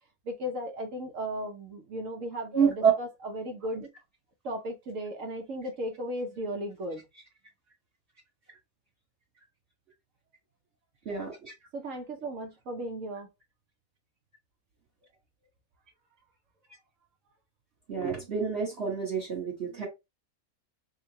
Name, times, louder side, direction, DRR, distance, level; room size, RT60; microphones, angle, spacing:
voice 1, 0.2-3.9 4.4-7.0 11.7-13.3, equal, 60° right, 1.1 m, -36 dB
voice 2, 2.5-2.9 11.0-11.5 17.9-19.9, right 6 dB, 45° right, 1.5 m, -28 dB
3.7 x 2.2 x 3.9 m
omnidirectional pair, 1.6 m